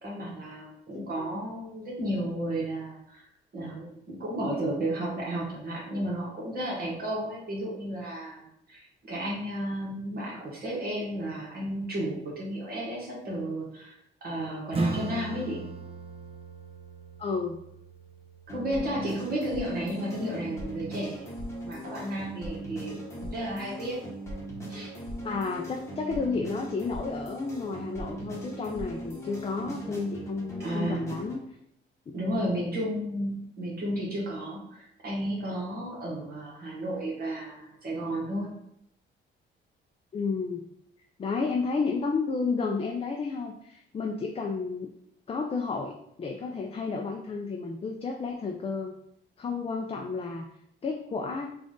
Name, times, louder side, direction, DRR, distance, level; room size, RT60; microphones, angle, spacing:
voice 1, 0.0-3.2 3.5-8.4 8.7-13.9 14.2-15.6 18.5-21.2 21.6-24.0 24.7-24.9 30.6-31.0 32.1-38.5, right 1 dB, 50° right, -4 dB, 1.4 m, -33 dB
voice 2, 0.9-1.3 17.2-17.6 25.2-31.5 40.1-40.7 41.2-44.9 45.3-48.9 49.4-50.5 50.8-51.5, left 4 dB, 30° left, 2 dB, 0.4 m, -32 dB
Acoustic guitar / Strum, 14.7-20.0, right 2 dB, 30° right, 0.6 m, -37 dB
sound 1, 18.5-31.4, right 1 dB, 15° left, 1.0 m, -39 dB
3.6 x 2.5 x 3.7 m, 0.74 s
cardioid pair, 90°, 20 cm